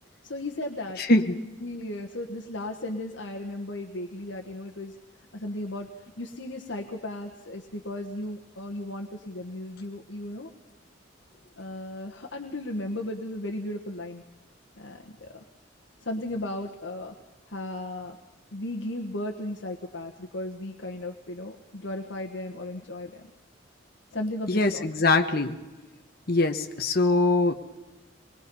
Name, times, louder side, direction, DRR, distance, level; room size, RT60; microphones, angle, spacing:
voice 1, 0.2-1.0 1.6-5.0 5.3-5.9 6.2-10.5 11.6-14.2 14.7-15.4 16.0-17.1 17.5-18.2 18.5-23.3 24.1-24.9, left 1 dB, 75° left, 1 dB, 1.4 m, -35 dB
voice 2, 1.0-1.4 24.5-25.6 26.3-27.5, left 2 dB, 50° left, 5 dB, 1.1 m, -22 dB
24.0 x 21.5 x 5.5 m, 1.1 s
head